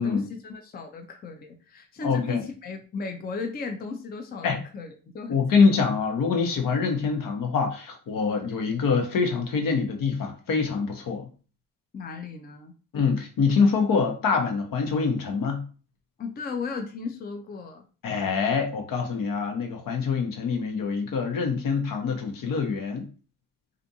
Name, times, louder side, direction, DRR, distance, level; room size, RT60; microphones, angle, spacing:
voice 1, 0.0-5.7 11.9-12.7 16.2-17.8, left 4 dB, 25° left, 0.4 m, -35 dB
voice 2, 2.0-2.4 4.4-4.6 5.3-11.3 12.9-15.6 18.0-23.1, left 5 dB, 65° left, 0.8 m, -25 dB
2.5 x 2.5 x 2.7 m
cardioid pair, 80°, 35 cm